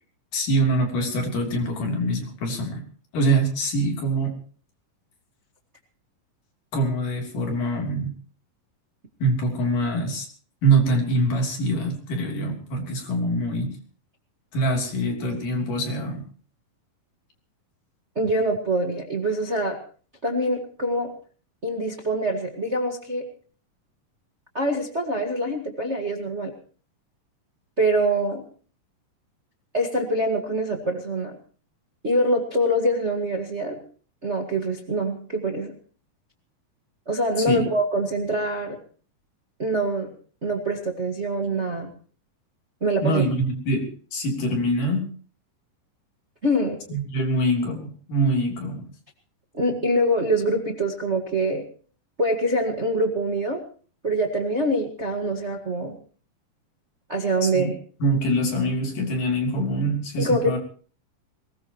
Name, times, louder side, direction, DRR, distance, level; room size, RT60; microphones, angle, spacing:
voice 1, 0.3-2.8 3.1-4.4 6.7-8.1 9.2-10.3 10.6-13.7 14.5-16.2 37.5-37.7 43.0-45.1 46.9-48.8 57.4-57.7 58.0-60.6, right 1 dB, 70° left, 2 dB, 4.8 m, -24 dB
voice 2, 18.1-19.8 20.2-21.1 21.6-23.3 24.5-26.5 27.8-28.4 29.7-31.4 32.0-33.8 34.2-35.7 37.1-38.8 39.6-40.1 40.4-41.9 42.8-43.2 46.4-46.8 49.5-51.6 52.2-53.6 54.0-55.9 57.1-57.7 60.2-60.6, right 1 dB, 30° right, 2 dB, 1.4 m, -24 dB
21.5 x 19.5 x 3.0 m, 0.42 s
omnidirectional pair, 3.9 m